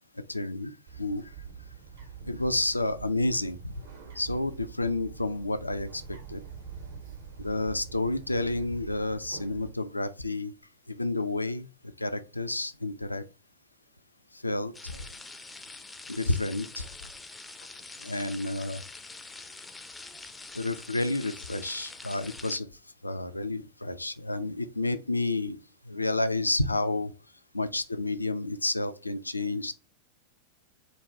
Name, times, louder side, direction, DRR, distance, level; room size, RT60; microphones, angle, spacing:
voice 1, 0.3-0.7 1.0-1.3 2.3-3.7 4.2-6.4 7.4-10.5 10.9-11.7 12.0-13.2 14.4-15.0 16.1-16.9 18.0-18.8 20.5-22.7 23.0-25.6 25.9-27.1 27.5-29.7, left 2 dB, 85° left, 0.3 m, -30 dB
Bird, 0.9-9.7, right 6 dB, 60° right, 1.3 m, -44 dB
sound 1, 14.7-22.6, left 3 dB, 10° left, 0.4 m, -45 dB
5.1 x 2.2 x 2.8 m
figure-of-eight pair, 90°, 0 cm